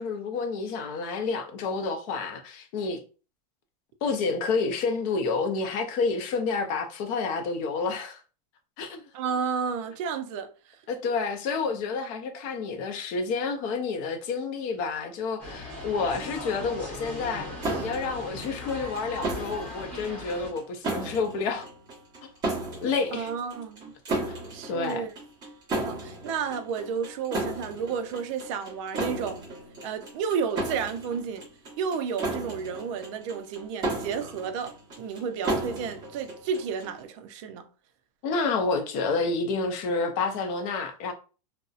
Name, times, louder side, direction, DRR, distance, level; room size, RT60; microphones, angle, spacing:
voice 1, 0.0-3.0 4.0-8.2 8.8-9.0 10.9-17.5 17.8-21.7 22.8-23.3 24.3-24.4 24.7-25.0 38.2-41.1, left 4 dB, 40° left, 0.5 m, -29 dB
voice 2, 9.1-10.8 23.1-23.9 24.5-25.1 25.8-29.4 29.8-31.5 31.8-37.7, right 6 dB, 50° right, 0.4 m, -32 dB
sound 1, 15.4-20.5, left 1 dB, 5° left, 0.8 m, -39 dB
sound 2, 17.6-37.0, right 2 dB, 20° right, 1.0 m, -34 dB
2.6 x 2.0 x 2.3 m
supercardioid pair, 155°, 21 cm